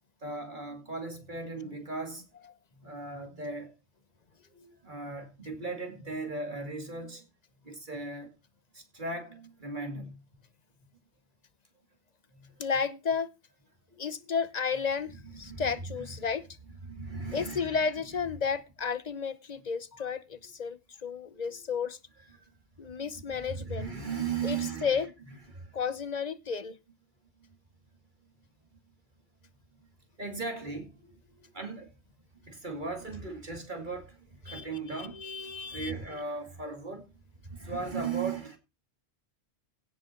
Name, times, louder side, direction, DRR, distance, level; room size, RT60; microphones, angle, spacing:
voice 1, 0.2-2.2 2.7-3.7 4.5-7.3 7.6-8.3 8.7-10.2 12.3-12.6 13.9-14.3 15.1-16.1 16.8-17.8 21.3-21.8 22.3-22.5 23.0-25.1 25.5-25.8 27.4-27.6 28.7-28.8 29.7-29.9 30.2-32.0 32.3-38.6, right 4 dB, 45° right, 2.7 m, -38 dB
voice 2, 12.6-13.3 14.0-16.5 17.3-22.0 22.8-23.9 24.4-25.1 25.7-26.8 34.5-35.9, left 6 dB, 40° left, 0.9 m, -32 dB
17.0 x 6.2 x 4.5 m
omnidirectional pair, 1.1 m